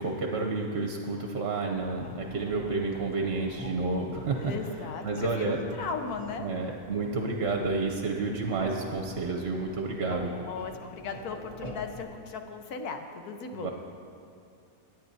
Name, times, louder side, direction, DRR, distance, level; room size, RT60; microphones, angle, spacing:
voice 1, 0.0-4.5 5.0-5.6 6.4-10.3 13.5-13.7, right 3 dB, 55° right, 2 dB, 0.8 m, -30 dB
sound 1, 1.7-12.0, left 1 dB, 25° left, 1.0 m, -45 dB
voice 2, 4.4-6.5 10.5-13.7, left 5 dB, 90° left, 5 dB, 1.3 m, -37 dB
20.0 x 8.9 x 2.7 m, 2.6 s
omnidirectional pair, 1.6 m